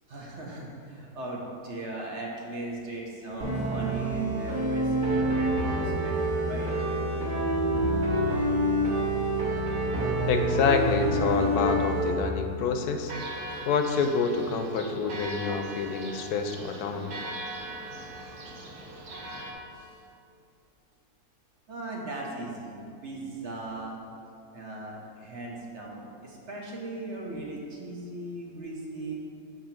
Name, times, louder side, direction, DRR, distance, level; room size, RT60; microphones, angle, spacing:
voice 1, 0.1-6.1 6.4-6.7 19.7-20.0 21.7-24.0 24.5-29.1, right 2 dB, 50° right, -2 dB, 1.1 m, -38 dB
sound 1, 3.4-12.2, right 1 dB, 35° right, 1.5 m, -27 dB
voice 2, 10.3-13.1 13.6-17.1, left 5 dB, 75° left, 5 dB, 1.1 m, -27 dB
Church bell, 13.0-19.5, right 1 dB, 75° right, 1.5 m, -40 dB
7.5 x 4.0 x 5.8 m, 2.5 s
omnidirectional pair, 1.7 m